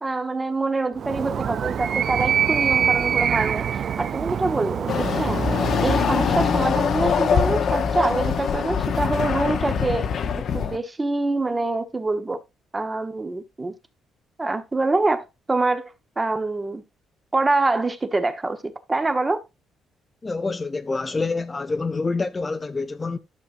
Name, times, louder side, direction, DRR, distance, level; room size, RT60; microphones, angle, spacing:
voice 1, 0.0-3.7 4.0-5.5 5.8-10.1 10.5-12.4 12.7-13.7 14.4-16.8 17.3-19.4, right 2 dB, 20° right, 0.9 m, -25 dB
Animal, 1.0-6.8, right 8 dB, 55° right, 0.4 m, -25 dB
Chatter / Car passing by / Motorcycle, 4.9-10.8, left 7 dB, 55° left, 0.8 m, -23 dB
voice 2, 20.2-23.2, left 3 dB, 25° left, 0.5 m, -27 dB
11.5 x 6.3 x 2.5 m
cardioid pair, 105°, 0 cm